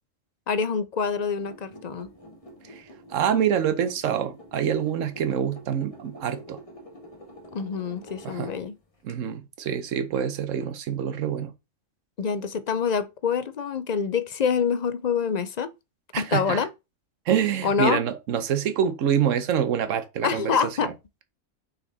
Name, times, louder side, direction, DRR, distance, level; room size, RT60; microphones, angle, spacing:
voice 1, 0.5-2.1 7.5-8.7 12.2-15.7 16.2-16.7 17.6-18.0 20.2-20.9, left 6 dB, 50° left, 0.5 m, -26 dB
sound 1, 1.4-9.1, equal, 30° left, 1.5 m, -47 dB
voice 2, 2.6-6.6 8.2-8.5 9.0-11.5 16.1-16.7 17.3-20.9, right 8 dB, 90° right, 1.1 m, -26 dB
5.9 x 4.3 x 4.0 m
omnidirectional pair, 1.3 m